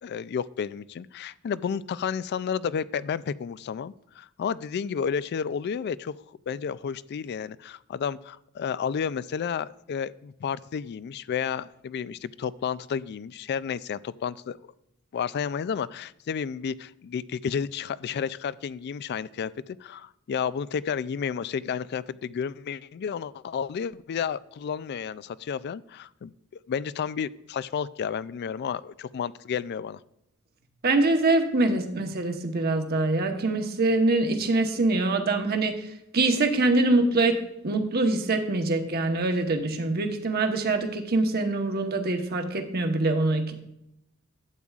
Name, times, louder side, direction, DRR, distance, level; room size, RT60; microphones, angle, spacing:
voice 1, 0.0-6.2 6.5-14.6 15.1-19.5 19.8-26.3 26.7-30.0, left 7 dB, 50° left, 18 dB, 0.3 m, -31 dB
voice 2, 30.8-35.8 36.1-43.5, right 2 dB, 50° right, 5 dB, 1.0 m, -24 dB
12.0 x 8.6 x 2.4 m, 0.81 s
head